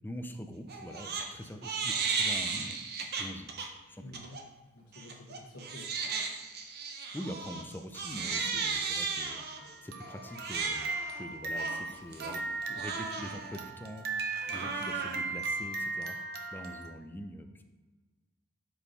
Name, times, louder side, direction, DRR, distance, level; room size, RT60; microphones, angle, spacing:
voice 1, 0.0-2.8 3.2-3.5 3.9-4.2 7.1-16.2 16.5-17.6, equal, 10° left, 6 dB, 0.4 m, -44 dB
Crying sobbing, 0.7-1.3 1.6-3.7 4.1-4.4 4.9-16.9, right 4 dB, 50° right, 0.7 m, -35 dB
voice 2, 4.0-4.4 4.7-5.9 8.4-8.5 9.6-9.7 14.5-14.7, left 1 dB, 60° left, -4 dB, 1.1 m, -50 dB
5.2 x 4.7 x 4.0 m, 1.3 s
head